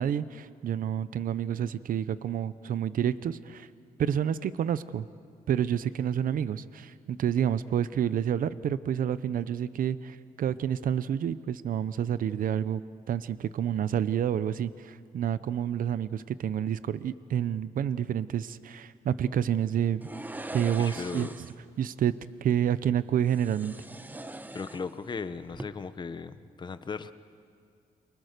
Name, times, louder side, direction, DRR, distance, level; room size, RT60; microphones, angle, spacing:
voice 1, 0.0-3.7 4.0-5.1 5.5-12.8 13.1-20.1 20.5-22.1 22.4-23.7, right 9 dB, 70° right, 15 dB, 0.7 m, -29 dB
sound 1, 20.0-21.7 23.2-25.2 25.5-25.6, right 2 dB, 10° right, 0.9 m, -42 dB
voice 2, 20.8-21.3 24.5-27.1, left 5 dB, 30° left, 12 dB, 0.9 m, -37 dB
29.5 x 24.0 x 6.7 m, 2.3 s
wide cardioid pair, 145°, 15 cm